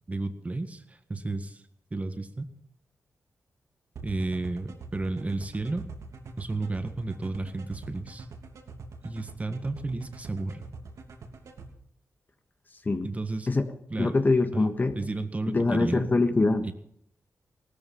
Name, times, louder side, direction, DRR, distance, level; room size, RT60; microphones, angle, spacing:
voice 1, 0.1-1.6 1.9-2.5 4.0-5.8 6.4-8.3 9.0-10.6 13.0-13.5 13.9-14.2 14.5-14.6 14.9-16.1 16.6-16.7, right 2 dB, 25° right, 8 dB, 1.8 m, -32 dB
sound 1, 4.0-11.7, right 5 dB, 85° right, 3.1 m, -44 dB
voice 2, 14.0-15.0 15.5-16.7, left 3 dB, 35° left, 8 dB, 1.5 m, -24 dB
18.5 x 13.5 x 5.6 m, 0.69 s
wide cardioid pair, 90°, 5 cm